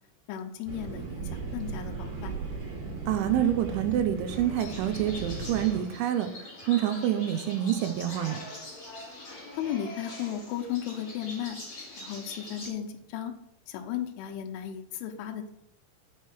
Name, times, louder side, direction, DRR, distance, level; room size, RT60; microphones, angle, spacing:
voice 1, 0.3-2.3 9.5-11.6 12.0-13.3 13.7-15.5, left 10 dB, 80° left, 4 dB, 3.2 m, -35 dB
sound 1, 0.7-5.8, right 4 dB, 60° right, 3.4 m, -37 dB
voice 2, 3.1-6.3 6.7-8.4, right 11 dB, 80° right, 7 dB, 2.9 m, -27 dB
sound 2, 4.3-12.7, left 2 dB, 35° left, 3.2 m, -43 dB
6.6 x 6.1 x 6.0 m, 0.79 s
omnidirectional pair, 5.8 m